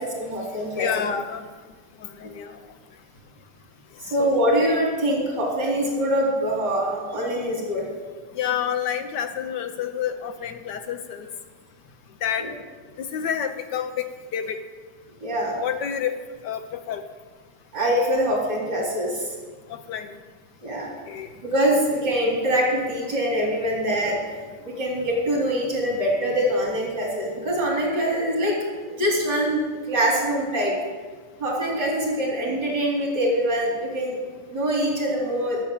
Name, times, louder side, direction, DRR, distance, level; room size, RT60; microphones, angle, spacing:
voice 1, 0.0-0.9 4.1-7.9 12.4-12.5 15.2-15.6 17.7-19.3 20.6-20.9 21.4-24.2 24.6-28.6 29.0-30.7 31.4-34.2 34.5-35.6, equal, 65° right, -3 dB, 4.4 m, -24 dB
voice 2, 0.8-1.4 2.2-2.5 4.2-4.4 8.4-11.3 12.2-12.5 13.0-14.6 15.6-16.2 16.4-17.0 19.9-20.1 21.1-21.3, left 8 dB, 70° left, 8 dB, 1.3 m, -28 dB
13.0 x 6.8 x 8.7 m, 1.5 s
omnidirectional pair, 2.0 m